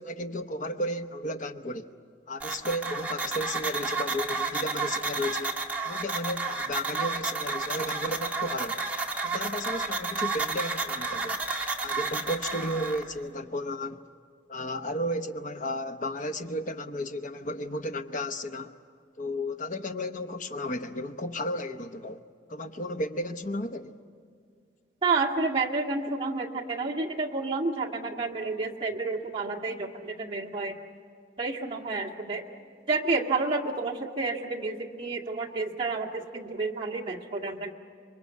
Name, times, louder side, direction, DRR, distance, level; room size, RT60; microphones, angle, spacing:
voice 1, 0.0-1.9 2.3-8.9 9.2-11.4 11.8-14.0 14.5-18.7 19.2-22.2 22.5-24.0, left 1 dB, 45° left, 1.0 m, -33 dB
sound 1, 2.4-13.0, right 4 dB, 10° right, 1.9 m, -31 dB
voice 2, 25.0-30.8 31.4-32.4 32.9-37.7, right 3 dB, 30° right, 1.9 m, -30 dB
27.0 x 23.0 x 8.4 m
head